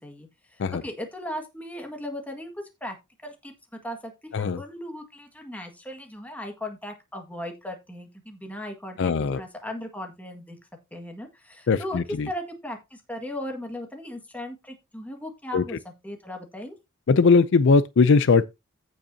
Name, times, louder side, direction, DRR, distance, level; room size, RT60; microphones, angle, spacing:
voice 1, 0.0-3.0 3.2-3.5 3.8-10.6 10.9-12.0 12.3-16.7, left 1 dB, 10° left, 1.8 m, -37 dB
voice 2, 9.0-9.4 11.7-12.3 15.5-15.6 17.1-18.5, left 4 dB, 60° left, 0.4 m, -19 dB
15.5 x 5.4 x 2.8 m
head